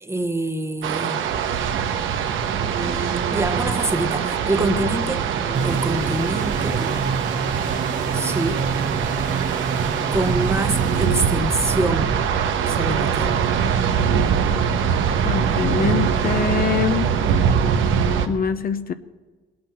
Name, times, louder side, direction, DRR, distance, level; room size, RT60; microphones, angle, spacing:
voice 1, 0.0-1.3 2.8-3.0 3.3-5.2 5.6-6.9 8.1-8.7 10.1-12.2 12.7-13.4, right 1 dB, 15° right, 8 dB, 1.1 m, -25 dB
sound 1, 0.8-18.3, right 7 dB, 80° right, 1.2 m, -23 dB
sound 2, 2.6-16.7, right 6 dB, 60° right, 1.5 m, -35 dB
sound 3, 5.5-12.0, right 5 dB, 40° right, 1.2 m, -28 dB
voice 2, 15.2-17.1 18.3-18.9, left 7 dB, 50° left, 10 dB, 0.7 m, -24 dB
19.5 x 8.7 x 5.8 m, 1.4 s
cardioid pair, 90°, 20 cm